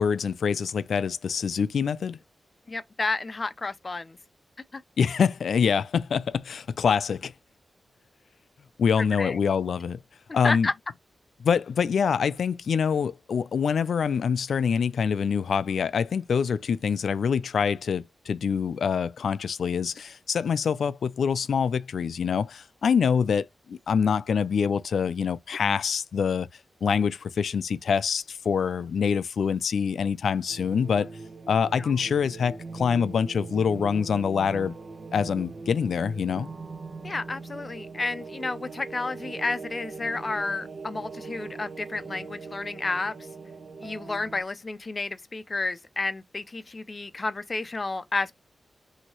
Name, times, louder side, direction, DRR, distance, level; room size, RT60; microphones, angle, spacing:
voice 1, 0.0-2.2 5.0-7.3 8.8-10.0 10.3-10.7 11.4-26.5 26.8-31.1 31.5-34.8 35.1-36.5, left 6 dB, 80° left, 0.4 m, -25 dB
voice 2, 2.7-4.2 4.7-4.8 9.0-9.4 10.4-10.7 31.8-31.9 37.0-43.1 43.8-48.3, left 3 dB, 30° left, 0.6 m, -31 dB
sound 1, 30.5-44.4, right 4 dB, 45° right, 0.7 m, -41 dB
6.0 x 2.7 x 3.0 m
wide cardioid pair, 170°, 0 cm